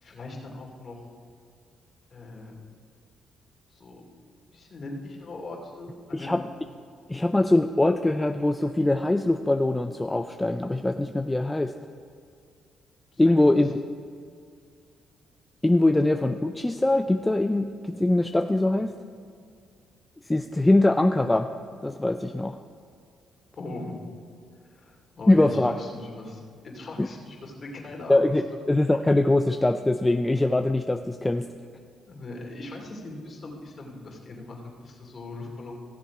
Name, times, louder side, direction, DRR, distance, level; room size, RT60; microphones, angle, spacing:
voice 1, 0.0-1.0 2.1-2.6 3.7-4.1 4.5-6.3 13.1-13.5 23.6-23.9 24.7-28.3 32.1-35.8, left 2 dB, 40° left, -1 dB, 2.7 m, -40 dB
voice 2, 7.1-11.7 13.2-13.7 15.6-19.0 20.3-21.5 21.8-22.6 25.3-25.7 27.0-27.1 28.1-31.5, left 2 dB, 10° left, 7 dB, 0.4 m, -22 dB
15.5 x 7.3 x 4.8 m, 2.3 s
cardioid pair, 90°, 0 cm